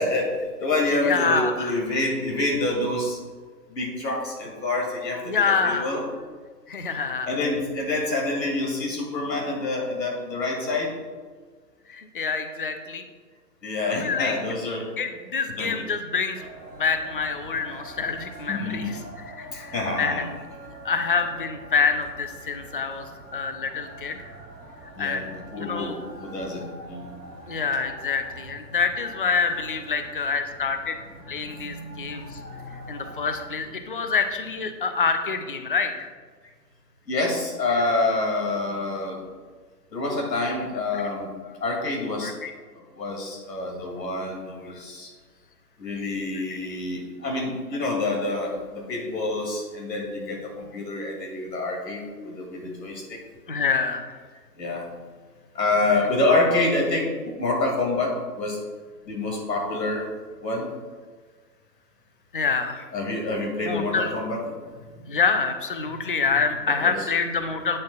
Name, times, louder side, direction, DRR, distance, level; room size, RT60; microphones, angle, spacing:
voice 1, 0.0-3.2 3.7-6.0 7.3-10.9 13.6-14.9 15.6-15.7 18.5-18.9 19.5-20.2 22.4-22.5 24.9-27.1 31.5-32.2 32.5-32.8 37.1-39.2 39.9-41.3 41.6-42.3 42.8-45.1 45.8-53.2 54.6-54.9 55.5-58.6 59.0-60.1 60.4-60.7 62.9-64.4 64.8-65.0 65.9-66.0 66.8-67.0, left 2 dB, 75° left, 0 dB, 2.6 m, -27 dB
voice 2, 1.0-1.7 5.3-5.9 6.7-7.3 11.9-13.0 13.8-14.3 15.0-16.5 16.7-20.3 20.8-24.2 24.8-25.3 25.6-26.0 27.5-31.0 31.3-32.4 32.9-36.1 37.7-37.8 38.2-38.4 40.9-41.0 41.4-41.5 42.2-42.5 44.6-44.8 46.3-46.6 53.5-54.2 62.3-62.9 63.6-64.1 65.1-67.8, left 5 dB, 35° left, 7 dB, 0.4 m, -27 dB
sound 1, 16.3-33.4, right 1 dB, ahead, 0.8 m, -44 dB
9.9 x 8.6 x 2.4 m, 1.5 s
hypercardioid pair, 150°, 50 cm